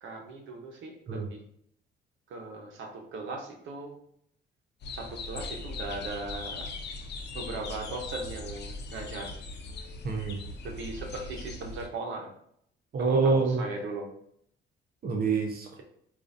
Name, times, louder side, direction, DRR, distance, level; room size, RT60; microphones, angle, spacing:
voice 1, 0.0-1.4 2.3-4.0 4.9-6.7 7.3-9.3 10.6-12.3 13.0-14.1, right 3 dB, 75° right, 2 dB, 1.0 m, -38 dB
sound 1, 4.8-11.9, left 3 dB, 60° left, 0.7 m, -39 dB
voice 2, 10.0-10.4 12.9-13.6 15.0-15.8, right 4 dB, 50° right, 2 dB, 0.7 m, -26 dB
4.6 x 2.5 x 2.6 m, 0.69 s
cardioid pair, 90°, 20 cm